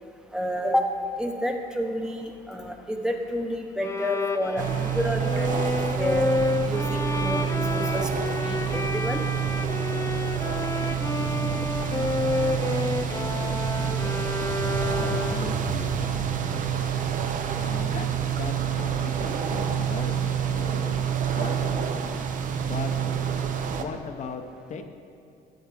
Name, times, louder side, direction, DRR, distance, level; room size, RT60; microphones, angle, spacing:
voice 1, 0.3-0.9 1.2-6.3 6.7-9.2, equal, 5° right, 3 dB, 0.8 m, -30 dB
Bowed string instrument, 3.8-15.7, left 3 dB, 15° left, 0.4 m, -30 dB
sound 1, 4.6-23.8, right 8 dB, 50° right, 0.7 m, -28 dB
sound 2, 8.7-19.2, left 2 dB, 75° left, 1.2 m, -41 dB
voice 2, 11.1-12.7 13.1-14.3 14.9-16.7 17.6-18.1 18.4-21.0 21.3-21.9 22.7-22.9 23.8-24.4 24.7-24.8, left 5 dB, 45° left, 5 dB, 0.7 m, -38 dB
13.0 x 7.8 x 3.5 m, 2.4 s
cardioid pair, 110°, 17 cm